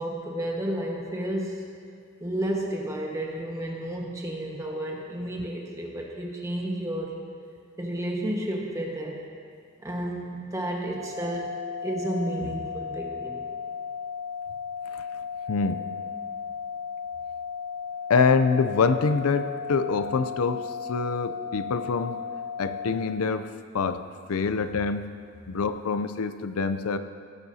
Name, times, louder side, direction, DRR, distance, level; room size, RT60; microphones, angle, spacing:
voice 1, 0.0-1.6 2.2-7.1 7.8-9.2 9.8-11.5 11.8-13.4, right 1 dB, 15° right, -2 dB, 1.4 m, -31 dB
sound 1, 10.9-22.9, left 6 dB, 70° right, 2.3 m, -35 dB
voice 2, 15.5-15.8 18.1-22.2 22.6-24.0 24.3-25.1 25.5-27.0, left 5 dB, 85° left, 10 dB, 0.5 m, -25 dB
17.0 x 11.5 x 2.8 m, 2.3 s
head